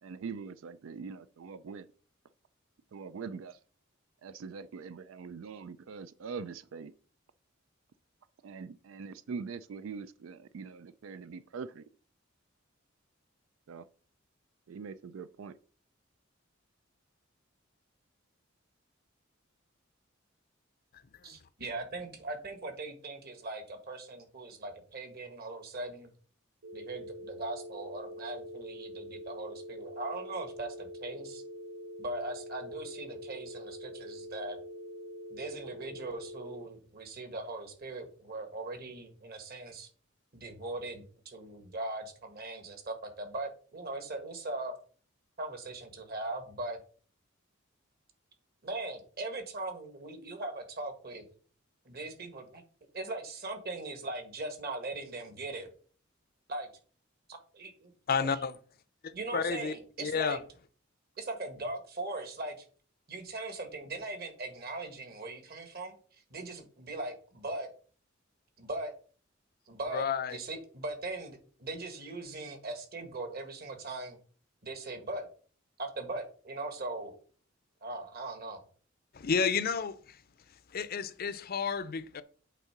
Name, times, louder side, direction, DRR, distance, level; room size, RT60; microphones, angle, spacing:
voice 1, 0.0-1.8 2.9-3.6 4.2-6.9 8.4-11.8 13.7-13.8 14.7-15.5, right 5 dB, 70° right, 0.4 m, -43 dB
voice 2, 21.2-26.1 26.7-31.4 32.0-34.6 35.3-39.9 40.3-44.7 45.4-46.8 48.6-51.2 51.8-52.6 52.9-55.7 56.5-56.7 57.3-57.9 58.2-58.4 59.1-60.4 61.2-62.6 63.1-67.7 68.6-68.9 69.7-70.0 70.3-74.2 74.6-75.3 75.8-77.1 77.8-78.6, right 2 dB, 50° right, 1.7 m, -40 dB
sound 1, 26.6-36.6, equal, 85° right, 1.2 m, -45 dB
voice 3, 58.1-58.5 59.0-59.7 60.0-60.4 69.9-70.4 79.1-80.0 80.7-82.2, left 6 dB, 50° left, 0.5 m, -31 dB
8.2 x 3.7 x 5.8 m
head